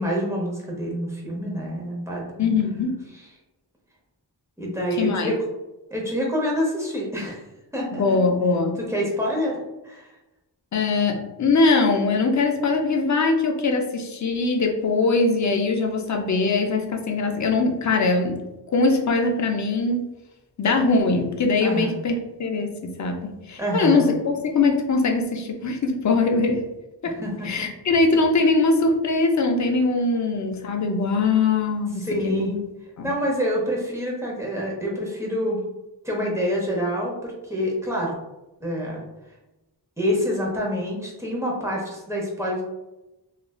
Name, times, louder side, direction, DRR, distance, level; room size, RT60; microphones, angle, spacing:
voice 1, 0.0-2.2 4.6-5.3 5.9-7.4 7.7-8.2 8.9-9.6 9.8-10.1 21.6-22.0 23.6-24.2 27.2-27.7 32.0-32.6 33.0-35.6 36.0-38.1 38.6-39.0 40.0-42.6, equal, 5° right, -3 dB, 0.7 m, -26 dB
voice 2, 2.4-3.0 5.0-5.3 7.9-8.8 10.7-18.4 18.7-20.0 20.6-26.6 27.0-27.2 27.4-32.5 33.0-33.1, left 3 dB, 45° left, 4 dB, 0.4 m, -22 dB
3.0 x 2.4 x 2.3 m, 0.99 s
wide cardioid pair, 110°, 43 cm